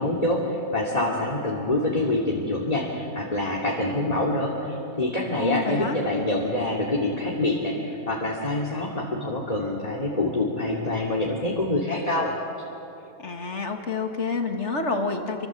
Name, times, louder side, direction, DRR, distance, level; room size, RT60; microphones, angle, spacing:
voice 1, 0.0-12.3, left 2 dB, 25° left, -3 dB, 2.7 m, -26 dB
voice 2, 5.4-6.0 13.2-15.5, left 4 dB, 50° left, 4 dB, 2.4 m, -28 dB
27.5 x 24.0 x 7.6 m, 2.9 s
omnidirectional pair, 1.5 m